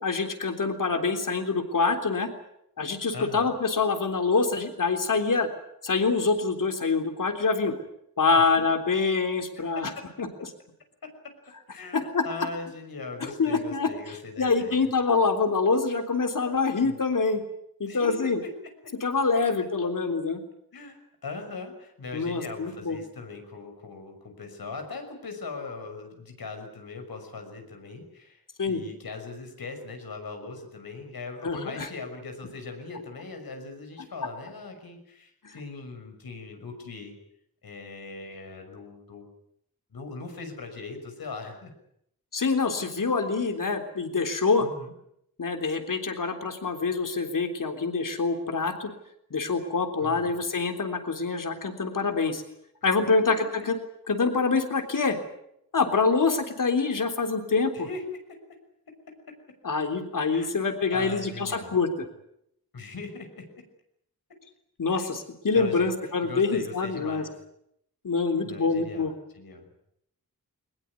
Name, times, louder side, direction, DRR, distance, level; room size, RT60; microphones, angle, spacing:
voice 1, 0.0-2.3 2.8-5.5 5.8-7.8 8.2-9.9 10.2-10.3 11.9-12.3 13.4-17.4 17.8-18.4 19.0-20.4 22.1-23.0 28.6-28.8 31.4-31.9 35.4-35.6 42.3-44.7 45.4-48.9 49.3-52.4 52.8-53.8 54.1-55.2 55.7-57.9 59.6-62.1 64.8-67.2 68.0-69.1, left 4 dB, 60° left, 6 dB, 3.6 m, -25 dB
voice 2, 3.1-3.5 8.4-8.7 9.7-9.8 11.0-11.1 11.7-14.9 16.8-16.9 17.9-18.5 18.8-18.9 20.7-28.4 28.7-37.1 37.6-39.3 39.9-41.7 44.6-44.9 50.0-50.3 52.8-53.1 57.7-58.0 60.3-61.8 62.7-63.5 64.9-65.1 65.5-65.9 66.2-67.3 68.4-69.7, left 3 dB, 90° left, 5 dB, 6.2 m, -40 dB
22.0 x 20.5 x 9.5 m, 0.75 s
wide cardioid pair, 120°, 35 cm